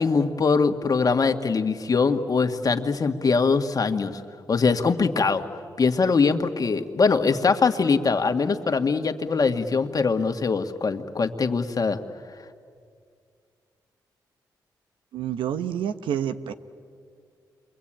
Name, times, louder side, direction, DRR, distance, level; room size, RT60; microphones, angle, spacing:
voice 1, 0.0-4.2 4.5-5.4 5.8-12.0, left 4 dB, 45° left, 6 dB, 1.8 m, -22 dB
voice 2, 15.1-16.5, right 9 dB, 85° right, 10 dB, 1.0 m, -28 dB
28.0 x 24.0 x 8.9 m, 2.2 s
supercardioid pair, 55°, 8 cm